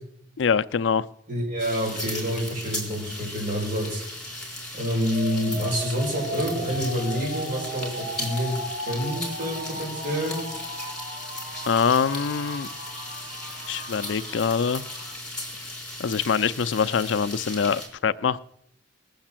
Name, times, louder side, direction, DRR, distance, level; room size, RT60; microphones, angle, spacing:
voice 1, 0.4-1.1 11.7-12.7 13.7-14.8 16.0-18.4, left 6 dB, 90° left, 15 dB, 0.5 m, -24 dB
voice 2, 1.3-4.0 4.7-8.6 8.9-10.4, equal, 45° right, -2 dB, 6.2 m, -27 dB
sound 1, 1.6-17.9, left 1 dB, 5° left, 4.0 m, -37 dB
sound 2, 5.1-15.1, equal, 25° right, 6.2 m, -37 dB
19.5 x 7.2 x 7.4 m, 0.78 s
head